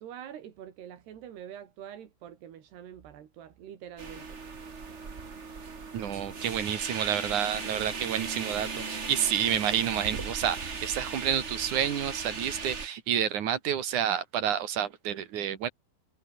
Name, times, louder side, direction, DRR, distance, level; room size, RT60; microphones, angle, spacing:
voice 1, 0.0-4.4, right 10 dB, 85° right, 4.5 m, -45 dB
sound 1, 4.0-12.9, right 4 dB, 70° right, 0.6 m, -37 dB
voice 2, 5.9-15.7, right 9 dB, 55° right, 3.0 m, -29 dB
omnidirectional pair, 4.6 m